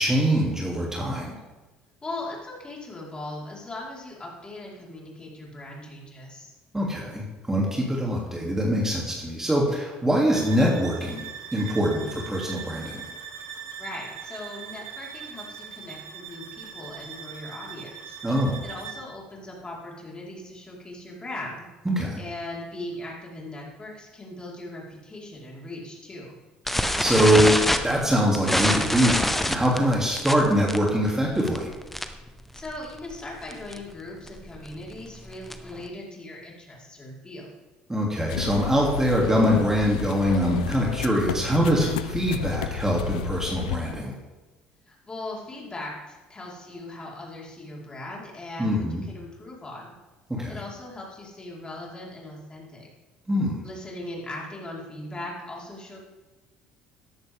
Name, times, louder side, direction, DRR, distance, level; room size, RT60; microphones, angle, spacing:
voice 1, 0.0-1.3 6.7-11.3 11.5-13.0 18.2-18.6 21.8-22.2 26.8-27.6 27.8-31.7 37.9-44.1 48.6-49.0 50.3-50.6 53.3-53.6, equal, 10° right, -3 dB, 2.9 m, -23 dB
voice 2, 2.0-6.5 13.8-18.2 18.6-21.7 22.2-26.3 32.5-37.5 44.9-49.9 50.5-52.9 53.6-56.0, left 1 dB, 25° left, -3 dB, 4.6 m, -39 dB
sound 1, 10.3-19.1, right 7 dB, 75° right, 2.2 m, -41 dB
sound 2, 26.7-32.3 32.6-32.8 33.1-33.2 33.5-33.8 34.3-35.8, left 1 dB, 5° left, 1.1 m, -26 dB
sound 3, 38.3-43.9, left 9 dB, 90° left, 0.4 m, -32 dB
14.0 x 10.5 x 3.7 m, 1.2 s
hypercardioid pair, 65°, 4 cm